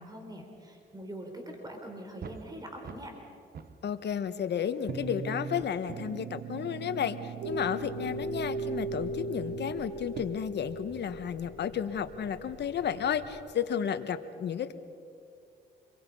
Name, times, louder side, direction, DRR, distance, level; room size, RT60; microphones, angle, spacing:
voice 1, 0.0-3.1, equal, 20° right, 2 dB, 4.1 m, -43 dB
sound 1, 2.2-3.2 3.5-4.4 4.9-10.2, right 7 dB, 50° right, 1.1 m, -41 dB
voice 2, 3.8-14.7, left 8 dB, 60° left, 10 dB, 1.3 m, -32 dB
sound 2, 7.4-13.3, right 1 dB, 80° right, 7.5 m, -39 dB
28.0 x 23.0 x 5.5 m, 2.5 s
cardioid pair, 90°, 20 cm